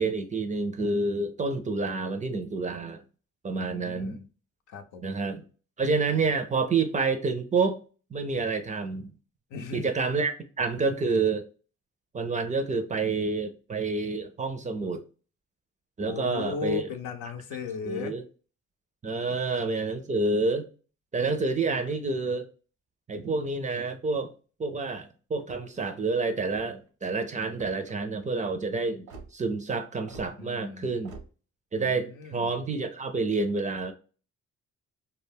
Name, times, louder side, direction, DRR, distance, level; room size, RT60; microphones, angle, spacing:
voice 1, 0.0-3.0 3.4-4.2 5.0-5.4 5.8-7.8 8.1-9.1 9.7-11.5 12.1-15.1 16.0-16.8 17.8-18.2 19.0-20.7 21.1-22.5 23.1-24.3 24.6-29.1 29.3-31.1 31.7-33.9, right 3 dB, 25° right, 0.4 m, -28 dB
voice 2, 3.5-4.3 4.7-5.2 9.5-9.9 16.0-18.1 19.3-19.4 21.7-21.8 30.4-31.0 31.8-32.5, left 6 dB, 80° left, 0.6 m, -37 dB
sound 1, 25.4-25.8 26.4-26.9 27.5-28.0 29.1-29.3 30.1-30.3 31.0-31.3, right 4 dB, 90° right, 0.8 m, -46 dB
2.2 x 2.2 x 3.4 m
cardioid pair, 90°, 30 cm